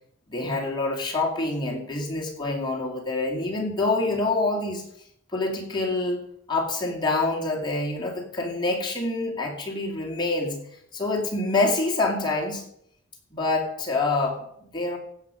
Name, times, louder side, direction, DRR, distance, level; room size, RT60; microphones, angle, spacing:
voice 1, 0.3-4.9 5.3-6.2 6.5-10.6 10.9-12.6 13.3-15.0, left 2 dB, 25° left, -1 dB, 2.4 m, -26 dB
16.0 x 7.0 x 5.2 m, 0.71 s
head